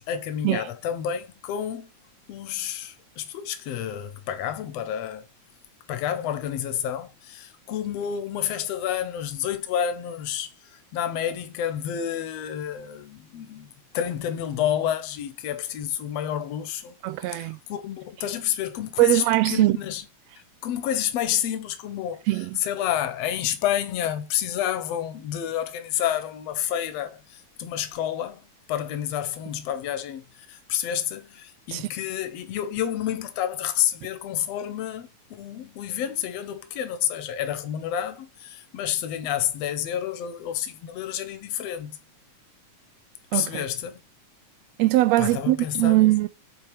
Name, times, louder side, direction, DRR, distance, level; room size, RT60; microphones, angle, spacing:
voice 1, 0.0-1.9 2.3-5.3 5.9-16.9 17.3-20.1 20.6-22.2 22.6-42.0 43.3-44.0 45.2-46.1, left 10 dB, 65° left, 1.9 m, -29 dB
voice 2, 17.0-17.6 19.0-19.8 22.3-22.6 31.7-31.9 43.3-43.6 44.8-46.3, right 18 dB, 85° right, 1.5 m, -21 dB
8.0 x 4.6 x 3.4 m
omnidirectional pair, 3.6 m